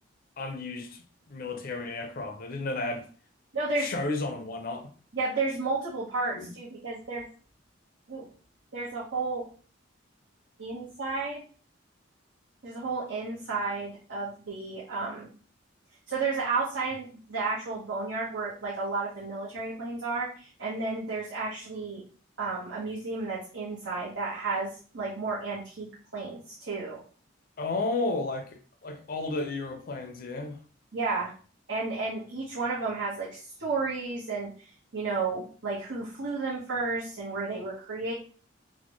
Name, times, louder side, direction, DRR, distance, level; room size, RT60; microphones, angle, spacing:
voice 1, 0.4-1.0 1.3-3.1 3.8-4.9 6.3-6.5 27.6-30.6, left 2 dB, 50° left, 0.5 m, -33 dB
voice 2, 3.5-3.9 5.1-7.3 8.1-8.2 8.7-9.4 10.6-11.4 12.6-15.3 16.1-22.0 22.4-25.9 26.1-27.0 30.9-31.3 31.7-34.7 34.9-38.1, right 3 dB, 70° right, 1.0 m, -32 dB
4.0 x 2.1 x 2.9 m
head